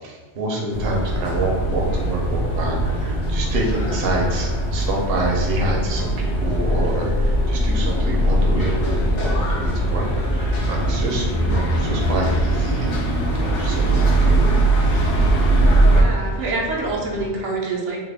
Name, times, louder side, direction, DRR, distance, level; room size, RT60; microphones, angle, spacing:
voice 1, 0.0-13.1 13.3-14.5, right 2 dB, 60° right, -1 dB, 0.8 m, -27 dB
sound 1, 0.7-16.0, right 1 dB, 80° left, 1.0 m, -20 dB
sound 2, 1.2-17.3, right 1 dB, 55° left, 0.6 m, -36 dB
voice 2, 15.8-18.0, right 3 dB, 90° right, -2 dB, 1.0 m, -27 dB
3.3 x 2.1 x 3.4 m, 1.3 s
omnidirectional pair, 1.2 m